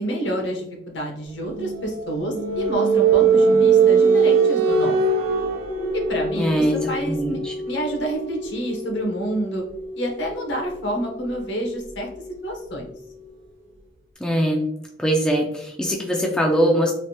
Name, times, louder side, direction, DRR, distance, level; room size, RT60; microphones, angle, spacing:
voice 1, 0.0-4.9 5.9-7.4 7.7-9.6 9.9-12.1 12.4-12.9, right 1 dB, 65° left, 0 dB, 0.9 m, -28 dB
sound 1, 1.4-13.0, right 5 dB, 85° right, 0.8 m, -22 dB
voice 2, 6.4-6.8 7.0-7.5 14.2-14.6 15.0-16.9, right 1 dB, 5° left, -1 dB, 0.3 m, -21 dB
3.3 x 2.5 x 2.8 m, 0.79 s
head